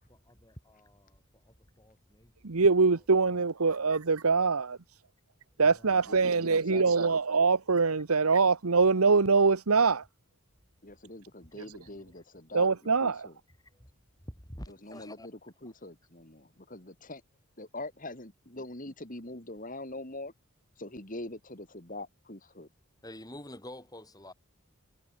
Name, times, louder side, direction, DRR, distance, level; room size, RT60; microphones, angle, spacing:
voice 1, 0.1-3.8 5.6-6.3 11.5-12.2 13.5-13.9 14.2-15.3 15.6-15.7 23.0-24.3, left 1 dB, 15° left, 7.4 m, -50 dB
voice 2, 2.4-4.8 5.6-10.0 12.5-13.1, right 4 dB, 80° right, 1.0 m, -24 dB
voice 3, 6.0-7.2 10.8-13.4 14.7-17.2 17.6-20.3 20.8-22.7, left 2 dB, 35° left, 3.4 m, -43 dB
head